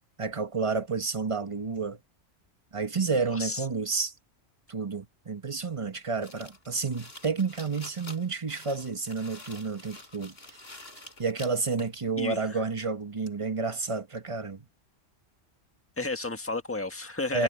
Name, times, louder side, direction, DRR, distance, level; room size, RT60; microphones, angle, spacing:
voice 1, 0.2-2.0 2.7-4.1 4.7-10.6 11.2-14.7 17.3-17.4, right 4 dB, 25° right, 1.3 m, -30 dB
voice 2, 3.3-3.6 12.2-12.6 16.0-17.4, left 3 dB, 10° left, 1.6 m, -33 dB
sound 1, 6.2-12.0, left 2 dB, 55° left, 4.4 m, -48 dB
omnidirectional pair, 1.3 m